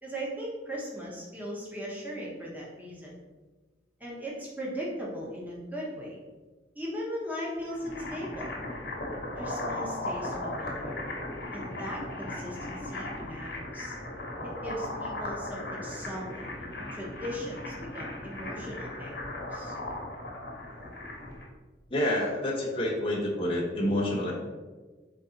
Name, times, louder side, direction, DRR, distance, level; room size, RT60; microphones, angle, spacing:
voice 1, 0.0-3.1 4.0-6.2 6.7-8.6 9.3-11.0 11.5-13.9 14.4-19.7, equal, 10° right, -4 dB, 0.9 m, -38 dB
sound 1, 7.6-21.5, left 1 dB, 55° left, 0.9 m, -37 dB
voice 2, 21.9-24.3, left 1 dB, 30° left, -3 dB, 0.8 m, -28 dB
4.1 x 3.2 x 3.8 m, 1.3 s
head